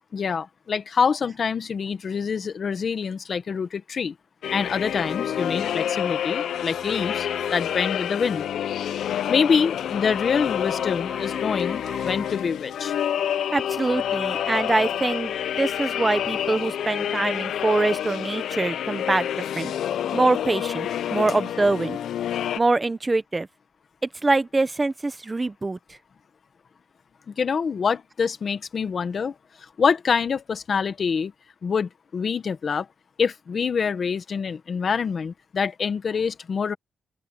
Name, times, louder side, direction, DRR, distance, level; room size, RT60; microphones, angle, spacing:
voice 1, 0.1-4.1 4.5-8.5 9.3-12.9 27.3-31.3 31.6-32.9 33.2-36.8, left 6 dB, 40° left, 1.2 m, -26 dB
sound 1, 4.4-22.6, left 10 dB, 80° left, 0.5 m, -28 dB
sound 2, 4.9-12.4, left 2 dB, 15° left, 2.7 m, -42 dB
voice 2, 13.5-19.7 20.1-22.0 22.6-23.5 24.2-25.8, right 2 dB, 20° right, 1.0 m, -24 dB
open air
wide cardioid pair, 145°, 0 cm